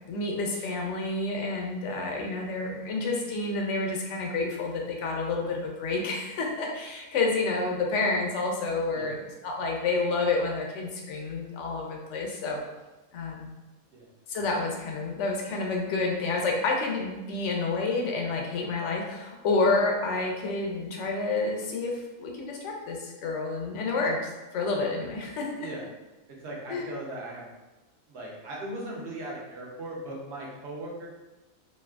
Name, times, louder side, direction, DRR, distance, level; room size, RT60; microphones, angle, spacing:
voice 1, 0.1-12.6 13.1-13.5 14.3-25.7 26.7-26.9, left 3 dB, 65° left, 0 dB, 0.8 m, -29 dB
voice 2, 26.3-27.5 28.1-31.1, right 1 dB, 55° right, -2 dB, 0.9 m, -38 dB
3.2 x 2.7 x 2.3 m, 1.1 s
omnidirectional pair, 1.5 m